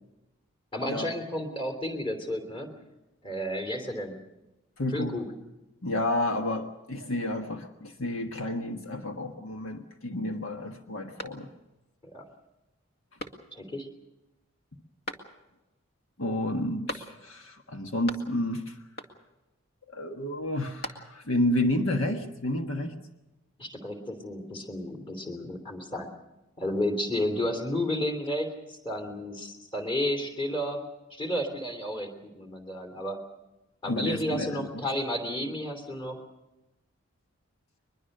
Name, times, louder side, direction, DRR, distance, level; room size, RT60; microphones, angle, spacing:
voice 1, 0.7-2.7 3.2-4.2 4.9-5.3 12.1-12.2 13.5-13.9 23.6-26.1 26.6-30.8 31.1-33.2 33.8-36.2, left 1 dB, 25° left, 6 dB, 3.1 m, -32 dB
voice 2, 4.8-5.1 5.8-11.5 16.2-18.7 19.9-22.9 33.8-34.9, left 1 dB, 70° left, 4 dB, 1.5 m, -30 dB
sound 1, 11.2-11.9 12.3-12.4 13.2-13.8 15.0-15.7 16.9-17.5 17.7-18.6 19.0-19.5 20.4-21.4, equal, 50° left, 2.2 m, -41 dB
22.5 x 22.0 x 6.7 m, 1.0 s
head